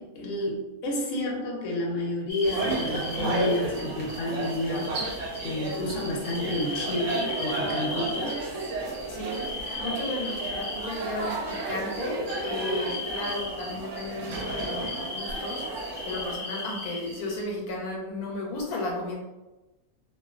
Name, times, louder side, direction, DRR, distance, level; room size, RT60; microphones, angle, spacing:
voice 1, 0.0-8.4, left 1 dB, 70° left, -2 dB, 0.9 m, -30 dB
sound 1, 2.3-17.4, left 2 dB, 25° right, 0.7 m, -38 dB
sound 2, 2.4-16.3, right 2 dB, 65° right, 0.9 m, -33 dB
voice 2, 9.1-9.4 9.8-19.2, left 2 dB, 90° left, -2 dB, 1.1 m, -34 dB
2.4 x 2.3 x 2.3 m, 1.1 s
omnidirectional pair, 1.5 m